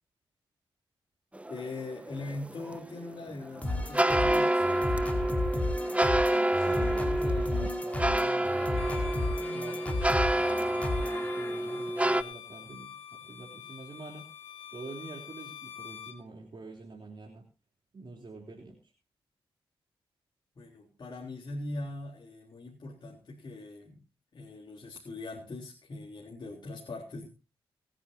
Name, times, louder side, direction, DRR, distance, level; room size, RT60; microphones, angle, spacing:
sound 1, 1.3-12.2, right 1 dB, 15° right, 1.0 m, -29 dB
voice 1, 1.5-5.1 20.6-24.0 24.3-27.3, left 2 dB, 50° left, -2 dB, 3.7 m, -41 dB
sound 2, 3.6-11.8, left 1 dB, 15° left, 4.7 m, -33 dB
voice 2, 6.5-14.3 14.7-17.5 17.9-18.9, right 3 dB, 50° right, 0 dB, 3.5 m, -46 dB
Bowed string instrument, 8.7-16.2, left 9 dB, 85° left, 2.0 m, -46 dB
25.0 x 10.0 x 2.8 m, 0.31 s
cardioid pair, 55°, 10 cm